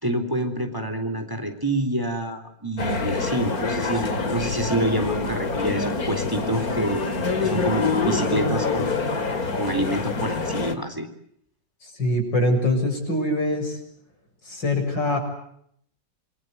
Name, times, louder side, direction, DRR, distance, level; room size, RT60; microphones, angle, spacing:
voice 1, 0.0-7.1 7.4-9.0 9.5-11.1, right 1 dB, 10° right, 7 dB, 3.6 m, -27 dB
sound 1, 2.8-10.7, left 4 dB, 55° left, 2.7 m, -26 dB
voice 2, 11.8-13.8 14.4-15.2, left 1 dB, 90° left, 3 dB, 7.7 m, -23 dB
27.5 x 23.5 x 8.1 m, 0.69 s
omnidirectional pair, 1.9 m